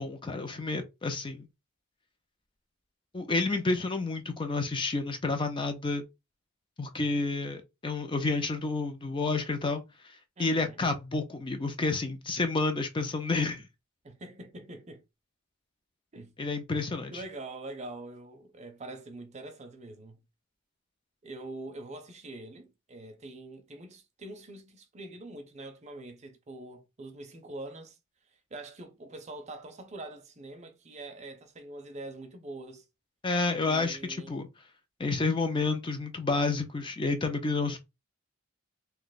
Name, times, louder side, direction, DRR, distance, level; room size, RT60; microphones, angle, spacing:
voice 1, 0.0-1.5 3.1-6.0 6.8-9.8 10.4-13.7 16.4-17.2 33.2-34.5 35.0-37.8, left 3 dB, 25° left, 0.5 m, -30 dB
voice 2, 10.4-10.9 14.0-15.0 16.1-16.4 16.8-20.2 21.2-28.0 28.5-32.9 33.6-34.4, right 2 dB, 35° right, 0.6 m, -44 dB
2.9 x 2.2 x 3.9 m
head